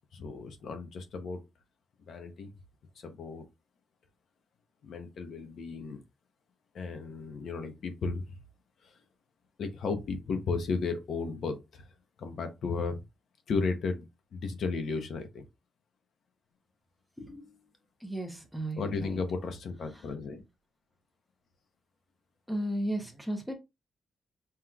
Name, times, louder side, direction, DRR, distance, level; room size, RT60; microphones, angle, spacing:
voice 1, 0.1-1.4 2.1-2.5 3.0-3.4 4.8-6.0 6.7-8.4 8.8-9.0 9.6-11.9 12.2-13.0 13.5-14.1 14.3-15.4 18.8-20.4, left 4 dB, 55° left, 0.8 m, -34 dB
voice 2, 17.2-17.7 18.0-19.2 19.9-20.0 22.5-23.5, right 1 dB, ahead, 0.9 m, -35 dB
5.6 x 3.1 x 2.3 m
cardioid pair, 155°, 0 cm